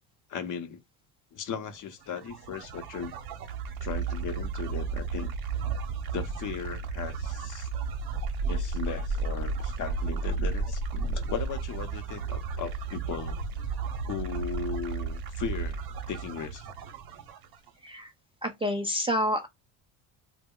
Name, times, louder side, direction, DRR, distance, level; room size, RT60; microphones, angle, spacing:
voice 1, 0.3-0.8 1.3-3.1 3.8-5.3 6.1-7.7 8.5-13.4 14.1-15.8 16.1-16.6, left 7 dB, 50° left, 0.6 m, -37 dB
sound 1, 2.0-17.7, right 4 dB, 60° right, 0.8 m, -33 dB
voice 2, 17.8-18.1 18.4-19.5, left 1 dB, 15° right, 0.3 m, -28 dB
2.1 x 2.0 x 3.6 m
cardioid pair, 90°, 42 cm